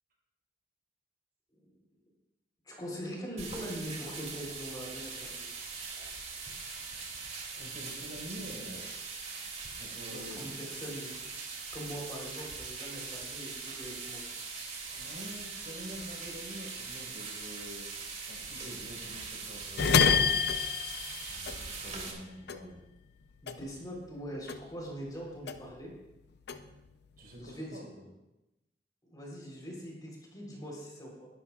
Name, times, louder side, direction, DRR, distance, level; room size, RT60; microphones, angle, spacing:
voice 1, 2.6-5.4 10.1-11.2 11.7-14.3 23.4-25.9 27.4-27.8 29.1-31.3, equal, 25° left, -2 dB, 3.8 m, -42 dB
sound 1, 3.4-22.1, right 4 dB, 40° right, 2.7 m, -41 dB
voice 2, 7.5-9.3 9.7-10.4 14.9-17.9 18.2-20.6 21.3-22.8 27.2-28.0, equal, 60° right, -3 dB, 4.5 m, -46 dB
sound 2, 19.8-22.2 22.5-24.2 24.5-25.9 26.2-27.4, left 6 dB, 65° left, 0.6 m, -29 dB
20.5 x 11.5 x 2.4 m, 0.95 s
head